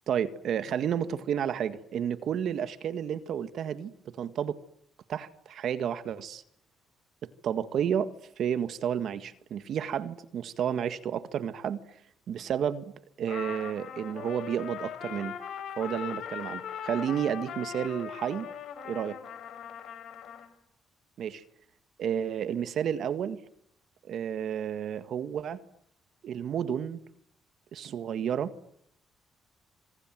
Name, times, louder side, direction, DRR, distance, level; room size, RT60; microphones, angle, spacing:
voice 1, 0.1-4.6 5.1-6.4 7.4-11.8 12.3-12.9 13.2-15.3 15.8-18.5 18.8-19.2 21.2-21.4 22.0-23.4 24.0-25.6 26.2-27.0 27.7-28.5, right 8 dB, 70° right, 1.7 m, -31 dB
Trumpet, 13.3-20.5, left 8 dB, 70° left, 5.7 m, -40 dB
28.5 x 26.5 x 7.7 m
cardioid pair, 90°, 0 cm